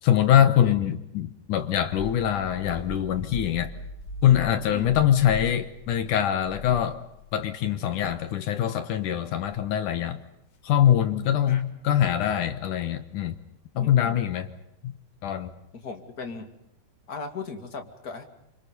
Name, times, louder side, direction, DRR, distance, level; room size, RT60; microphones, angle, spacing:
voice 1, 0.0-3.7 4.2-7.0 7.3-10.2 10.6-13.4 13.8-14.5 14.8-14.9 15.2-15.5, left 10 dB, 65° left, 9 dB, 2.1 m, -23 dB
sound 1, 1.6-7.4 7.9-8.2 9.4-9.7 10.8-11.3, left 2 dB, 85° left, 1.0 m, -41 dB
voice 2, 4.6-4.9 11.5-11.6 13.7-14.2 15.7-16.6 17.1-18.2, left 4 dB, 30° left, 5 dB, 1.7 m, -38 dB
27.0 x 26.5 x 5.4 m, 0.81 s
omnidirectional pair, 5.0 m